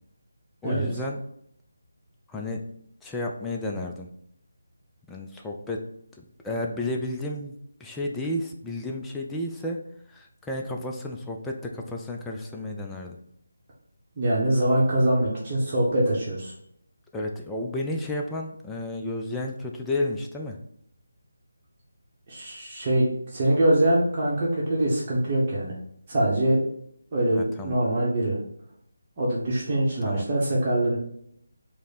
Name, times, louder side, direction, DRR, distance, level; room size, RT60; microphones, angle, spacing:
voice 1, 0.6-1.2 2.3-2.6 3.0-4.1 5.1-5.8 6.2-7.5 7.8-9.8 10.1-13.2 17.1-20.6 27.3-27.8 30.1-30.3, left 1 dB, 5° left, 0 dB, 0.3 m, -32 dB
voice 2, 14.2-16.5 22.3-25.7 26.1-26.6 27.1-28.4 29.2-31.0, right 1 dB, 30° right, -6 dB, 0.9 m, -23 dB
4.8 x 2.1 x 4.1 m, 0.71 s
figure-of-eight pair, 155°, 0 cm